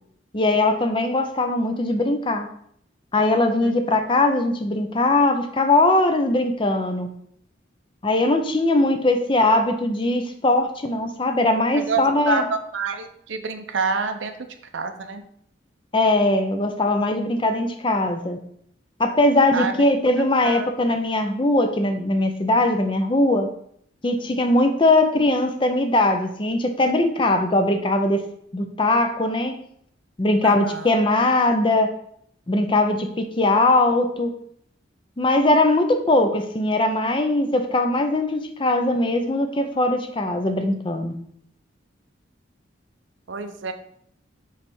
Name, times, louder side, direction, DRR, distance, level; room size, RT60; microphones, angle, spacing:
voice 1, 0.3-2.5 3.1-7.1 8.0-12.4 15.9-18.4 19.0-23.5 24.0-28.2 28.5-29.6 30.2-31.9 32.5-34.3 35.2-41.1, left 2 dB, 25° left, 6 dB, 0.5 m, -20 dB
voice 2, 11.8-14.4 14.7-15.2 19.5-19.9 20.4-20.7 30.4-30.9 43.3-43.7, right 4 dB, 75° right, 8 dB, 0.6 m, -27 dB
5.4 x 3.3 x 5.4 m, 0.67 s
head